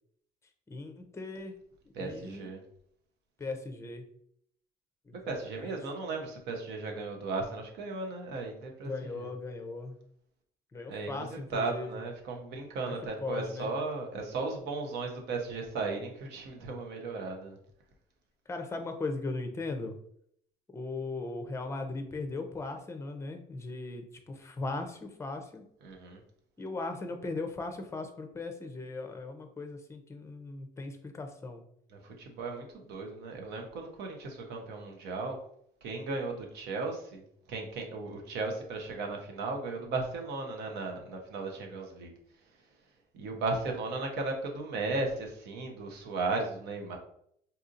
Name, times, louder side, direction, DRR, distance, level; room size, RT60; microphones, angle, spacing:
voice 1, 0.7-1.5 2.0-2.5 3.4-4.1 5.1-5.8 8.8-10.0 10.7-11.9 13.2-13.7 18.5-19.9 20.7-25.6 26.6-31.6, left 3 dB, 15° left, 6 dB, 0.5 m, -38 dB
voice 2, 1.9-2.6 5.3-9.3 10.9-17.6 25.8-26.2 31.9-35.4 35.8-37.2 37.5-42.1 43.1-47.0, right 3 dB, 85° right, 2 dB, 0.8 m, -36 dB
4.1 x 2.7 x 2.5 m, 0.69 s
cardioid pair, 110°, 17 cm